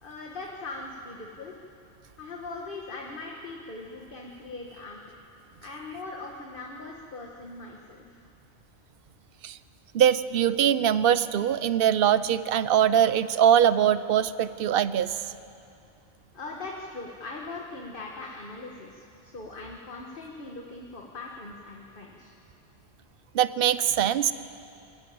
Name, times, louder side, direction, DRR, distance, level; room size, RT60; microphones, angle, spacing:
voice 1, 0.0-1.5 2.2-5.0 5.6-8.2 16.3-22.3, left 3 dB, 50° left, 0 dB, 1.6 m, -40 dB
voice 2, 9.9-15.1 23.3-24.3, right 9 dB, 60° right, 15 dB, 0.8 m, -22 dB
24.0 x 14.0 x 9.3 m, 2.5 s
omnidirectional pair, 1.1 m